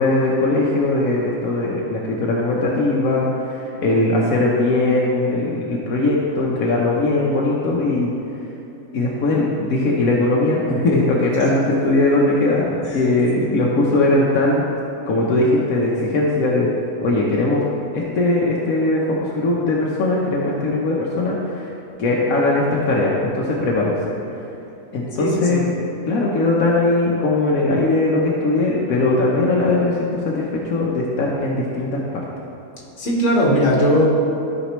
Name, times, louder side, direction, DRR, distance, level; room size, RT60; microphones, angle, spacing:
voice 1, 0.0-8.1 8.9-14.6 15.1-16.7 17.0-17.6 17.9-21.7 22.0-24.1 24.9-25.7 26.1-32.2, left 2 dB, 85° left, -4 dB, 1.3 m, -20 dB
voice 2, 25.2-25.7 33.0-34.0, equal, 60° left, -3 dB, 1.8 m, -18 dB
13.0 x 5.1 x 3.1 m, 3.0 s
omnidirectional pair, 1.4 m